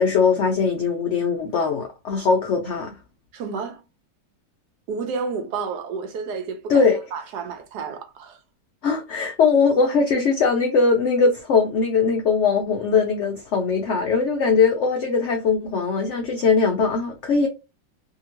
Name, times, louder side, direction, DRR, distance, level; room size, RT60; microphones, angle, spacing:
voice 1, 0.0-2.9 6.7-7.0 8.8-17.5, left 5 dB, 75° left, 0.6 m, -20 dB
voice 2, 3.3-3.8 4.9-8.4, right 5 dB, 75° right, 1.2 m, -31 dB
2.8 x 2.7 x 2.9 m
omnidirectional pair, 1.8 m